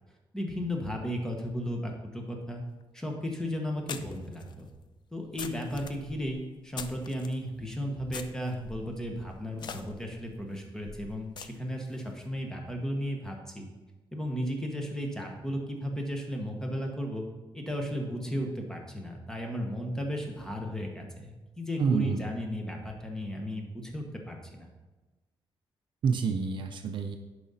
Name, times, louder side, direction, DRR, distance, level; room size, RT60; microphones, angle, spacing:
voice 1, 0.3-2.6 2.9-4.7 5.1-13.7 14.1-17.2 17.5-24.7, equal, 5° left, 1 dB, 1.1 m, -35 dB
sound 1, 2.8-2.9 3.9-7.4 8.1-12.0, left 6 dB, 50° left, 0.4 m, -44 dB
voice 2, 21.8-22.3 26.0-27.2, right 5 dB, 60° right, 5 dB, 0.6 m, -28 dB
10.5 x 4.9 x 4.1 m, 1.2 s
wide cardioid pair, 165°, 9 cm